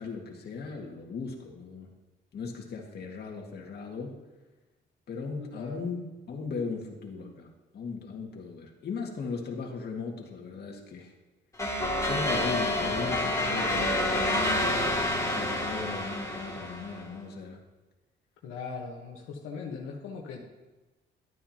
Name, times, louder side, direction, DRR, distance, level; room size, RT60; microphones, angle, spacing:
voice 1, 0.0-1.9 2.3-4.2 5.1-6.0 6.3-7.5 7.7-11.1 12.0-14.7 15.3-17.6, left 4 dB, 55° left, 0 dB, 2.0 m, -37 dB
voice 2, 5.5-5.9 18.4-20.4, left 4 dB, 90° left, -1 dB, 1.3 m, -39 dB
sound 1, 11.6-17.1, left 1 dB, 15° left, 2.9 m, -28 dB
12.5 x 9.4 x 2.9 m, 1.2 s
cardioid pair, 90°, 20 cm